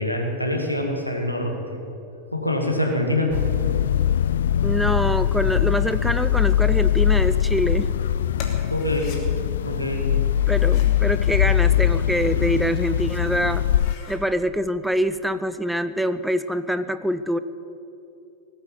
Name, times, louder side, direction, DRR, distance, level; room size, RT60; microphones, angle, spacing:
voice 1, 0.0-1.8 2.3-3.4 8.7-9.2 9.6-10.1, left 1 dB, 90° left, 2 dB, 2.2 m, -25 dB
sound 1, 3.3-13.9, left 11 dB, 60° left, 0.3 m, -21 dB
voice 2, 4.6-7.9 10.5-13.6 14.1-17.4, equal, ahead, 12 dB, 0.5 m, -25 dB
sound 2, 8.3-9.2 10.3-11.0 11.9-12.7 13.1-13.2 13.6-14.2, left 5 dB, 40° left, 2.5 m, -42 dB
19.0 x 8.1 x 9.3 m, 2.7 s
figure-of-eight pair, 90°, 0 cm